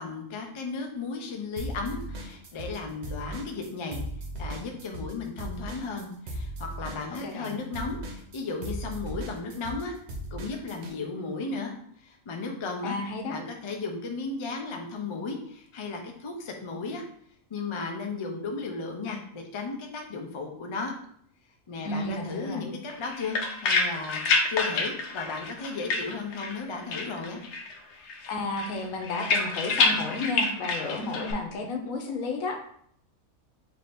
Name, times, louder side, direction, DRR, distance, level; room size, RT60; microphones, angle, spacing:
voice 1, 0.0-4.0 4.4-10.0 10.3-11.7 12.0-13.0 13.3-17.0 17.5-20.9 21.7-27.4, left 4 dB, 50° left, 2 dB, 0.3 m, -35 dB
sound 1, 1.6-2.8 3.0-10.9, right 1 dB, 60° right, 1.0 m, -37 dB
voice 2, 7.2-7.6 12.8-13.4 21.8-22.6 28.3-32.6, left 3 dB, 90° left, 3 dB, 1.2 m, -32 dB
sound 2, 22.9-26.6 26.9-27.8 28.1-31.3, left 3 dB, 65° left, 0.8 m, -28 dB
3.4 x 2.8 x 4.2 m, 0.65 s
omnidirectional pair, 1.4 m